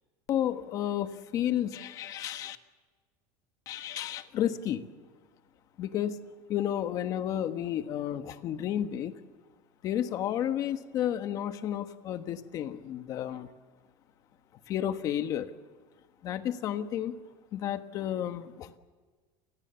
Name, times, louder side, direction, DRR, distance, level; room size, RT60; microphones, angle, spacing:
voice 1, 0.3-2.6 3.7-4.8 5.8-6.2 6.5-9.1 9.8-13.5 14.7-15.5 16.2-17.1 17.5-18.8, left 10 dB, 35° left, 9 dB, 1.3 m, -32 dB
29.5 x 20.0 x 7.0 m, 1.4 s
cardioid pair, 165°, 10 cm